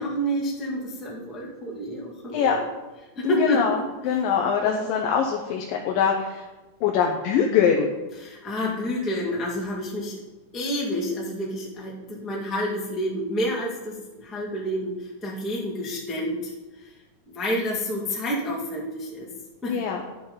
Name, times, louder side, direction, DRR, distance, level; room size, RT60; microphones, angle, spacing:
voice 1, 0.0-2.6 3.2-3.6 4.6-4.9 8.2-10.2 10.5-16.5 16.8-16.9 17.3-19.3 19.6-19.8, equal, ahead, -5 dB, 0.9 m, -29 dB
voice 2, 3.2-6.5 6.8-7.9 19.7-20.0, left 7 dB, 80° left, 1 dB, 2.5 m, -23 dB
12.0 x 7.6 x 4.0 m, 1.1 s
omnidirectional pair, 3.9 m